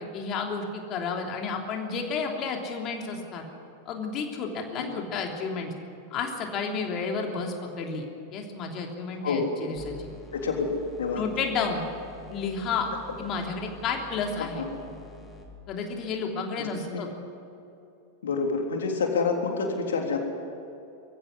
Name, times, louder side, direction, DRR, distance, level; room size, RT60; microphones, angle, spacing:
voice 1, 0.0-3.4 3.8-5.7 6.1-8.0 8.3-10.1 11.2-11.8 12.3-12.9 13.2-14.6 15.7-17.1, left 5 dB, 35° left, 2 dB, 3.2 m, -31 dB
sound 1, 9.7-15.5, left 3 dB, 20° left, 3.1 m, -47 dB
voice 2, 10.3-10.7 11.0-11.3 14.6-14.7 16.6-17.0 18.2-20.2, left 4 dB, 65° left, 2 dB, 3.6 m, -28 dB
23.0 x 15.5 x 9.9 m, 2.8 s
figure-of-eight pair, 90°, 0 cm